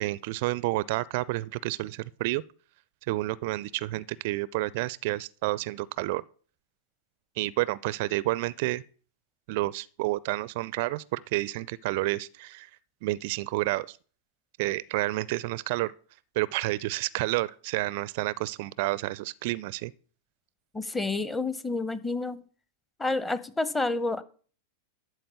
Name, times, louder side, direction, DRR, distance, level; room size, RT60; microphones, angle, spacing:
voice 1, 0.0-2.4 3.1-6.2 7.4-8.8 9.5-12.7 13.0-14.0 14.6-15.9 16.4-19.9, right 19 dB, 50° right, 0.4 m, -30 dB
voice 2, 20.7-22.4 23.0-24.2, left 2 dB, 10° left, 0.9 m, -29 dB
13.0 x 4.4 x 8.3 m
figure-of-eight pair, 95°, 0 cm